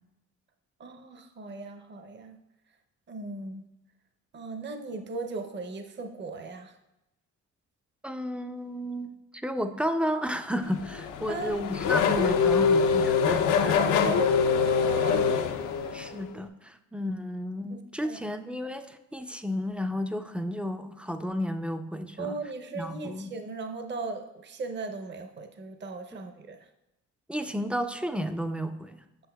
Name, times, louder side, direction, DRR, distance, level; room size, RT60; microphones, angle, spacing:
voice 1, 0.8-2.4 3.1-3.6 4.3-6.7 11.3-11.6 13.1-15.5 15.8-15.9 17.7-18.2 22.2-26.6, right 3 dB, 35° right, 6 dB, 0.6 m, -37 dB
voice 2, 8.0-14.1 15.9-22.4 22.7-23.3 27.3-29.0, equal, 5° right, 8 dB, 0.3 m, -32 dB
Race car auto racing / Accelerating revving vroom, 10.7-16.2, left 6 dB, 85° left, 0.6 m, -24 dB
7.7 x 5.8 x 2.3 m, 0.89 s
cardioid pair, 90°, 30 cm